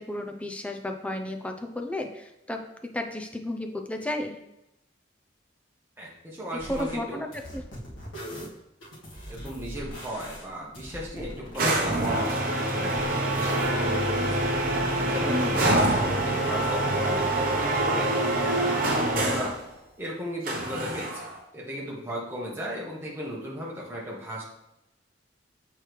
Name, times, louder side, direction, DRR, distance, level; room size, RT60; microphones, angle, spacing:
voice 1, 0.0-4.4 6.7-7.6 15.3-15.6, left 1 dB, 5° left, 4 dB, 0.5 m, -33 dB
voice 2, 6.0-7.2 9.3-14.5 15.1-19.5 20.0-24.4, equal, 10° right, -4 dB, 1.4 m, -36 dB
sound 1, 6.6-7.0 7.3-11.6 11.9-13.9, equal, 85° left, 1.7 m, -41 dB
sound 2, 11.6-19.6 20.5-21.4, right 1 dB, 45° right, 0.9 m, -25 dB
6.2 x 4.6 x 3.3 m, 0.90 s
head